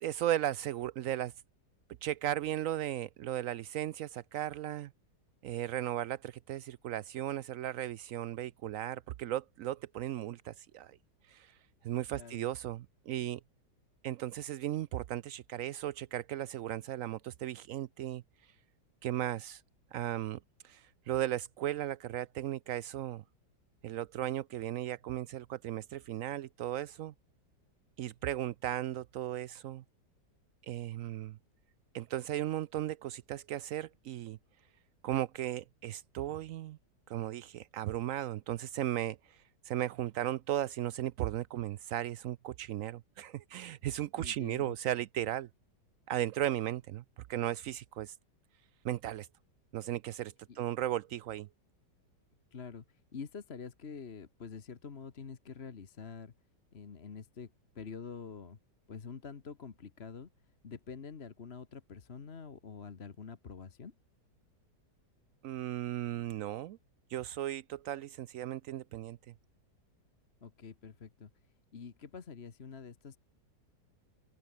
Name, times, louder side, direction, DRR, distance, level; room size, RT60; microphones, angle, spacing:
voice 1, 0.0-1.3 2.0-4.9 5.4-11.0 11.3-11.5 11.8-13.4 14.0-18.2 19.0-19.6 19.9-23.2 23.8-27.1 28.0-29.8 30.6-31.4 31.9-34.4 35.0-36.8 37.1-39.2 39.7-45.5 46.1-47.0 47.3-48.2 48.8-49.3 49.7-51.5 65.4-66.8 67.1-69.2, right 13 dB, 85° right, 0.7 m, -36 dB
voice 2, 12.1-12.5 44.2-44.8 50.5-50.6 52.5-56.3 56.7-58.6 58.9-60.3 60.6-63.9 70.4-71.3 71.7-73.2, left 5 dB, 40° left, 1.4 m, -46 dB
open air
omnidirectional pair, 1.9 m